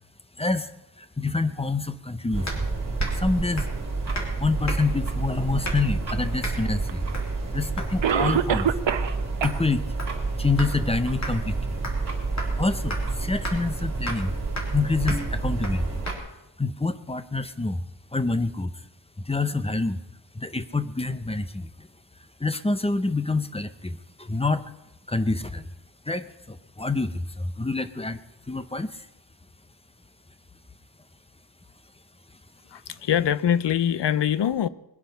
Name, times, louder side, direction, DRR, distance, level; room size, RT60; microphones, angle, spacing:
voice 1, 0.4-0.7 1.0-2.7 3.1-3.7 4.4-7.1 7.5-8.7 9.4-9.8 10.4-11.8 12.6-14.3 14.7-16.0 16.6-17.9 18.1-18.8 19.2-20.0 20.3-21.9 22.4-24.7 25.1-25.7 26.1-28.2 28.5-29.1, left 3 dB, 15° left, 0.6 m, -27 dB
sound 1, 2.3-16.1, right 3 dB, 35° right, 3.3 m, -29 dB
sound 2, 2.5-2.7 3.0-3.2 3.6-3.8 4.1-4.3 4.7-5.0 5.6-6.0 6.4-6.6 7.1-7.3 7.8-8.0 8.3-8.6 8.9-9.0 9.4-10.8 11.2-11.3 11.8-12.1 12.4-12.5 12.9-13.0 13.4-13.6 14.1-14.3 14.6-14.8 15.1-15.2 15.6-15.8 16.1-16.2, left 1 dB, 35° left, 3.6 m, -35 dB
Cough, 6.9-7.0 8.0-9.2 9.4-9.5 10.1-10.2 10.7-10.8, right 8 dB, 70° right, 0.9 m, -24 dB
voice 2, 32.7-34.7, left 9 dB, 65° left, 0.6 m, -23 dB
21.0 x 10.5 x 5.6 m
wide cardioid pair, 160°, 46 cm